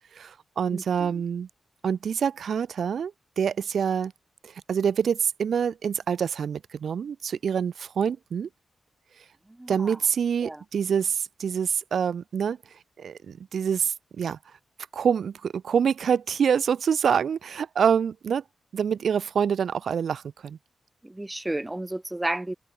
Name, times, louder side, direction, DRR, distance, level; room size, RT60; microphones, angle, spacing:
voice 1, 0.1-1.5 1.8-4.1 4.4-8.5 9.7-12.6 13.0-14.4 14.9-18.4 18.7-20.6, right 7 dB, 75° right, 2.8 m, -26 dB
voice 2, 0.7-1.2 9.5-10.0 10.4-10.6 21.0-22.6, right 1 dB, 15° right, 3.4 m, -33 dB
wide cardioid pair, 125°, 0 cm